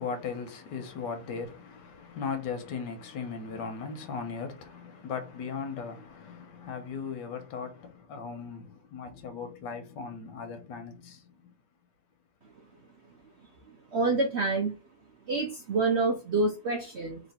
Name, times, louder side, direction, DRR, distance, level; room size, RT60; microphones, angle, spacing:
voice 1, 0.0-11.3, left 5 dB, 90° left, 1.4 m, -38 dB
voice 2, 13.9-14.7 15.3-17.2, right 3 dB, 70° right, 0.6 m, -27 dB
3.1 x 2.9 x 4.2 m
omnidirectional pair, 1.8 m